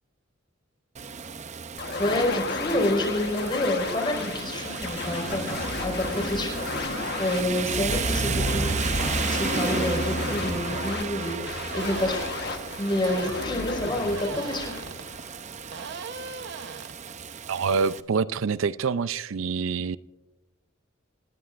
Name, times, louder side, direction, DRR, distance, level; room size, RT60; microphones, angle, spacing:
Rain, 1.0-18.0, right 4 dB, 35° right, 0.6 m, -33 dB
sound 1, 1.8-15.7, left 4 dB, 55° left, 1.3 m, -33 dB
voice 1, 2.0-14.8, left 1 dB, 25° left, 4.8 m, -29 dB
sound 2, 11.0-11.1 11.7-12.4 13.0-13.5 14.1-15.0 15.7-16.9, right 4 dB, 60° right, 0.9 m, -38 dB
voice 2, 17.5-20.0, right 5 dB, 80° right, 0.5 m, -26 dB
27.0 x 19.0 x 2.5 m
head